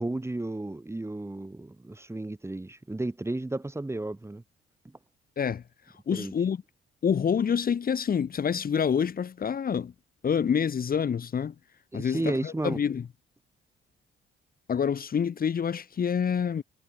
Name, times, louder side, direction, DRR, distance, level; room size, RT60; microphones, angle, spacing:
voice 1, 0.0-4.4 6.1-6.3 11.9-12.8, right 2 dB, 15° right, 4.4 m, -33 dB
voice 2, 6.1-6.6 7.0-9.9 10.2-11.5 11.9-13.0 14.7-16.6, left 7 dB, 45° left, 2.3 m, -27 dB
cardioid pair, 90°, 20 cm